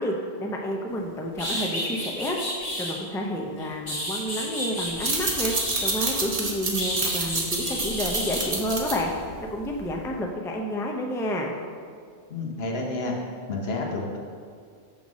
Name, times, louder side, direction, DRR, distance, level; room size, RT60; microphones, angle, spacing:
voice 1, 0.0-2.4 2.8-9.1 9.4-11.5, equal, 5° left, 1 dB, 0.3 m, -30 dB
sound 1, 1.0-1.1 1.4-3.0 3.6-6.2 6.8-8.5, equal, 35° left, 1.3 m, -31 dB
sound 2, 4.9-10.1, right 3 dB, 35° right, 0.9 m, -29 dB
voice 2, 12.3-13.1 13.5-14.2, left 2 dB, 65° left, 0 dB, 1.2 m, -30 dB
6.1 x 3.8 x 6.1 m, 2.1 s
omnidirectional pair, 1.1 m